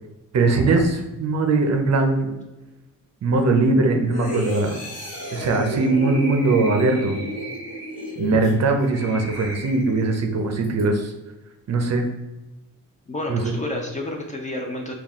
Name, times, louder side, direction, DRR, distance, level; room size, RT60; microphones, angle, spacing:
voice 1, 0.3-2.3 3.2-4.7 5.3-7.2 8.2-11.1 11.7-12.1 13.3-13.5, right 3 dB, 50° right, 4 dB, 0.5 m, -20 dB
sound 1, 4.1-10.2 10.6-10.8, equal, 45° left, 1.4 m, -32 dB
voice 2, 13.1-14.9, left 1 dB, 20° left, 1 dB, 0.5 m, -30 dB
4.0 x 2.3 x 3.5 m, 1.0 s
wide cardioid pair, 135°, 34 cm